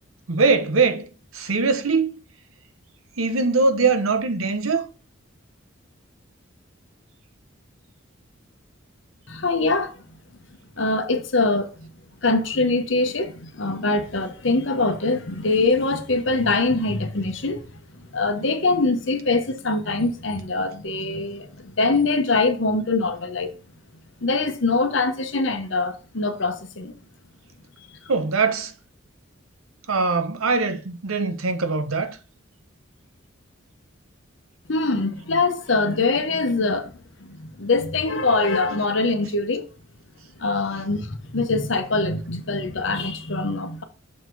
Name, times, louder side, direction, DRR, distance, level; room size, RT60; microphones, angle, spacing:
voice 1, 0.3-2.2 3.2-4.8 28.1-28.7 29.9-32.2, right 4 dB, 85° right, 0.9 m, -22 dB
voice 2, 9.3-10.0 10.8-11.9 12.2-17.7 17.9-23.5 24.2-27.0 34.7-36.9 37.2-39.7 40.4-43.8, left 3 dB, 65° left, 1.0 m, -23 dB
6.4 x 4.1 x 4.6 m
head